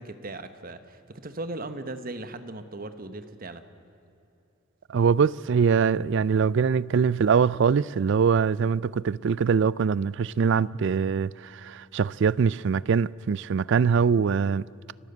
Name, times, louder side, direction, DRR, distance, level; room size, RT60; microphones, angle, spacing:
voice 1, 0.0-3.6, right 2 dB, 45° right, 1.1 m, -38 dB
voice 2, 4.9-14.6, right 6 dB, 60° right, 0.4 m, -23 dB
29.5 x 12.5 x 8.0 m
head